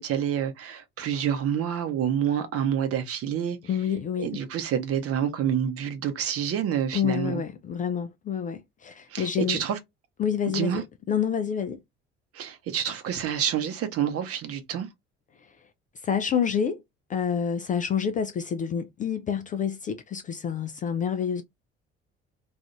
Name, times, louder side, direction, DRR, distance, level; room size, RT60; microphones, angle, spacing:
voice 1, 0.0-3.6 4.2-7.4 9.1-9.8 10.5-10.8 12.3-14.9, right 9 dB, 45° right, 0.8 m, -28 dB
voice 2, 3.7-4.4 6.9-9.6 10.2-10.8 11.1-11.8 16.0-16.8 17.1-21.4, left 7 dB, 25° left, 0.3 m, -28 dB
2.4 x 2.3 x 2.9 m
figure-of-eight pair, 55°, 34 cm